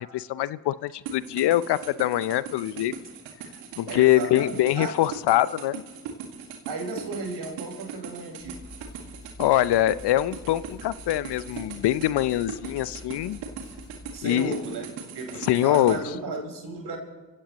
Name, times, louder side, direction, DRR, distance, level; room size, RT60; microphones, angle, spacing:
voice 1, 0.0-2.9 3.8-5.8 9.4-13.4 14.2-14.6 15.5-16.0, left 14 dB, 65° left, 17 dB, 0.7 m, -23 dB
sound 1, 1.1-16.0, right 7 dB, 85° right, 2.0 m, -40 dB
voice 2, 3.9-5.0 6.7-8.6 14.1-17.0, right 2 dB, 60° right, 1 dB, 5.2 m, -34 dB
sound 2, 8.4-14.2, left 2 dB, 25° left, 2.5 m, -46 dB
28.5 x 17.0 x 3.0 m, 1.4 s
hypercardioid pair, 40°, 44 cm